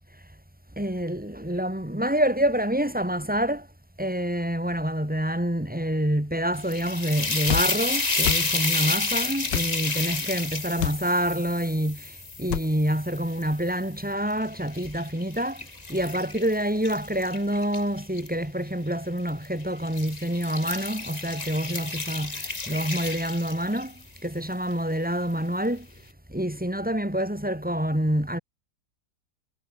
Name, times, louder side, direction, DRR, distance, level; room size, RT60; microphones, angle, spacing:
voice 1, 0.8-3.7 4.0-12.1 12.4-15.6 15.9-23.9 24.2-25.9 26.3-28.4, equal, 5° right, 2.3 m, -27 dB
sound 1, 6.5-13.8 14.3-18.3 19.2-19.5 19.8-24.0, left 3 dB, 25° left, 1.7 m, -31 dB
sound 2, 7.5-7.7 8.2-8.5 9.5-9.7 10.8-11.0 12.5-12.7, left 15 dB, 90° left, 1.3 m, -28 dB
omnidirectional pair, 1.9 m